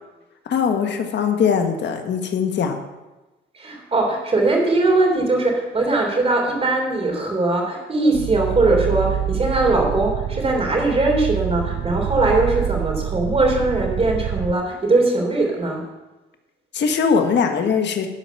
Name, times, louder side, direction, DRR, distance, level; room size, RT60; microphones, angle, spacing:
voice 1, 0.4-2.8 16.7-18.1, left 6 dB, 60° left, 5 dB, 1.5 m, -21 dB
voice 2, 3.5-15.8, right 2 dB, 30° right, 1 dB, 3.4 m, -20 dB
sound 1, 8.1-14.5, right 11 dB, 70° right, 0.6 m, -26 dB
12.0 x 5.0 x 7.0 m, 1.1 s
cardioid pair, 90°, 20 cm